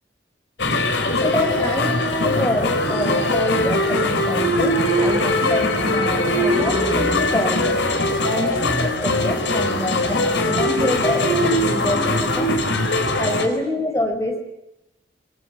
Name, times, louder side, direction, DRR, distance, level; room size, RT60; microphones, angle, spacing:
sound 1, 0.6-13.5, left 1 dB, 75° left, 4.2 m, -21 dB
voice 1, 1.2-7.8 8.2-12.7 13.2-14.5, left 1 dB, 15° left, 6 dB, 4.7 m, -26 dB
27.0 x 22.0 x 9.2 m, 0.88 s
head